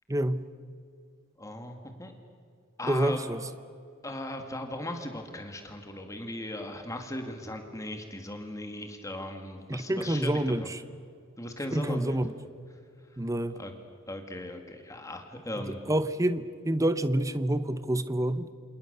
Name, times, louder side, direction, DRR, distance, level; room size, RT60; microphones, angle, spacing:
voice 1, 0.1-0.4 2.9-3.4 9.7-10.8 11.7-12.3 13.2-13.6 15.9-18.5, right 1 dB, 15° right, 12 dB, 0.8 m, -27 dB
voice 2, 1.4-2.1 2.8-3.3 4.0-10.3 10.6-10.7 11.4-12.2 13.5-13.7 14.1-15.8, left 1 dB, 15° left, 4 dB, 2.1 m, -38 dB
28.0 x 28.0 x 6.8 m, 2.3 s
head